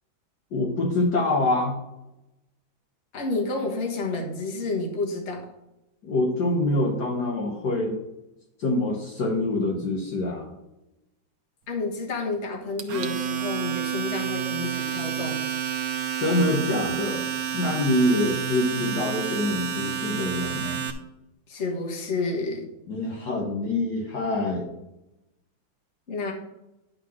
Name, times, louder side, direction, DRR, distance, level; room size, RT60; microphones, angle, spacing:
voice 1, 0.5-1.8 6.0-8.0 8.6-10.5 16.2-17.2 17.5-20.8 22.9-24.7, left 2 dB, 55° left, 0 dB, 1.7 m, -25 dB
voice 2, 3.1-5.5 11.7-15.5 21.5-22.7 26.1-26.3, left 3 dB, 35° left, 0 dB, 1.6 m, -30 dB
Domestic sounds home sounds, 12.8-20.9, right 8 dB, 60° right, 1.1 m, -29 dB
10.5 x 3.9 x 6.3 m, 0.91 s
omnidirectional pair, 2.2 m